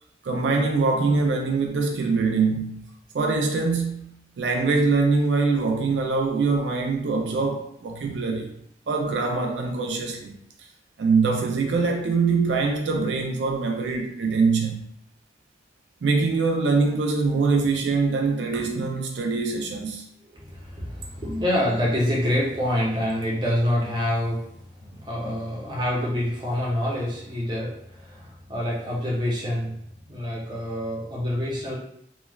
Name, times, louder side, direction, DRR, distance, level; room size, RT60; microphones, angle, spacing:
voice 1, 0.2-2.9 3.1-8.5 8.9-10.3 11.0-14.9 16.0-20.0, right 4 dB, 85° right, 0.4 m, -23 dB
voice 2, 20.3-29.8 30.1-31.8, left 1 dB, 25° right, 0.7 m, -26 dB
3.1 x 2.2 x 2.3 m
head